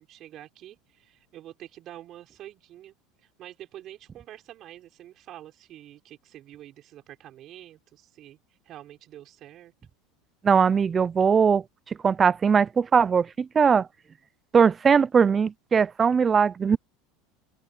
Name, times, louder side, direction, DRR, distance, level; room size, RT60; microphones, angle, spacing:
voice 1, 0.0-2.9 3.2-8.4 8.6-9.7, right 13 dB, 45° right, 5.5 m, -46 dB
voice 2, 10.4-11.6 12.0-13.9 14.5-16.8, right 6 dB, 25° right, 0.5 m, -20 dB
open air
supercardioid pair, 105°, 0 cm